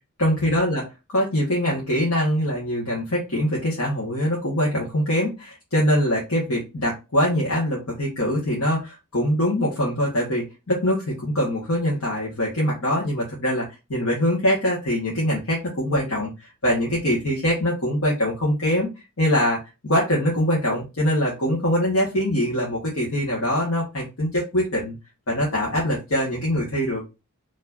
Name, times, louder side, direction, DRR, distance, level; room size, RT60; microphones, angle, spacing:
voice 1, 0.2-0.8 1.1-18.9 19.2-19.6 19.8-24.9 25.3-27.0, equal, 65° left, -5 dB, 1.4 m, -23 dB
4.7 x 3.1 x 2.6 m, 0.26 s
head